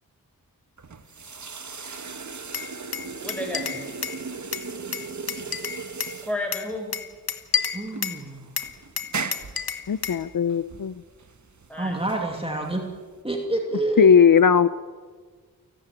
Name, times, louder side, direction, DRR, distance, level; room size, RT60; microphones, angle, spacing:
sound 1, 0.8-13.2, right 4 dB, 55° right, 1.5 m, -38 dB
Glass, 2.5-4.2 4.5-6.2 6.5-8.2 8.6-10.2, left 7 dB, 85° left, 1.4 m, -30 dB
voice 1, 3.2-3.8 6.2-6.9 11.7-12.1, left 1 dB, 5° left, 2 dB, 6.8 m, -32 dB
voice 2, 7.7-8.4 11.8-12.8 13.2-14.1, right 2 dB, 15° right, 1 dB, 2.6 m, -27 dB
voice 3, 9.9-10.9 14.0-14.7, left 7 dB, 65° left, 15 dB, 0.6 m, -17 dB
29.0 x 13.0 x 9.1 m, 1.5 s
wide cardioid pair, 90°, 35 cm